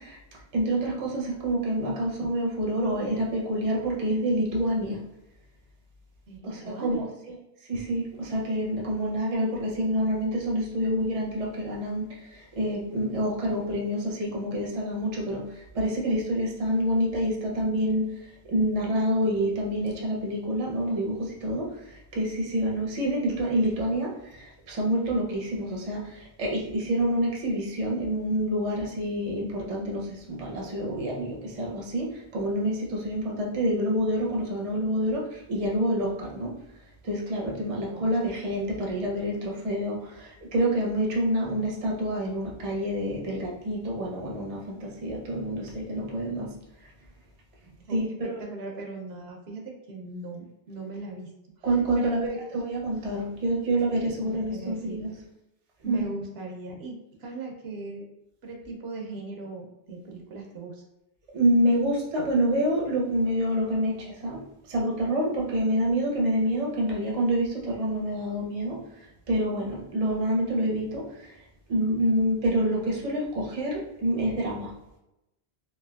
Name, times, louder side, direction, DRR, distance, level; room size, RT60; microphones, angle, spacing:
voice 1, 0.5-5.0 6.4-7.0 7.7-12.0 12.6-15.4 15.7-18.0 18.5-21.7 22.1-24.1 24.7-26.0 26.4-35.2 35.5-36.5 37.1-40.0 40.5-46.5 47.9-48.3 51.6-55.1 55.9-56.0 61.3-63.9 64.2-64.4 64.7-68.8 69.3-71.0 71.7-74.7, equal, 40° right, -2 dB, 0.6 m, -27 dB
voice 2, 6.3-7.0 37.9-38.1 47.6-51.3 51.6-52.4 53.9-55.2 55.8-58.0 58.4-60.8, right 3 dB, 70° right, 1 dB, 0.9 m, -39 dB
3.3 x 2.6 x 2.3 m, 0.91 s
omnidirectional pair, 1.1 m